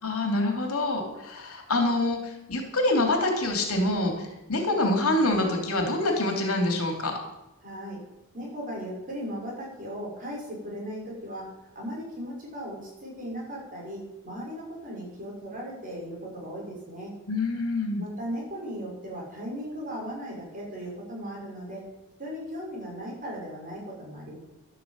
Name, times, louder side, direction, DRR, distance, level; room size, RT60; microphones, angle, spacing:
voice 1, 0.0-7.1 17.3-18.0, left 2 dB, 75° left, 3 dB, 3.0 m, -26 dB
voice 2, 7.6-8.0 8.3-17.1 18.0-21.8 22.2-24.4, equal, 40° right, -3 dB, 6.6 m, -37 dB
12.0 x 9.4 x 7.6 m, 0.92 s
head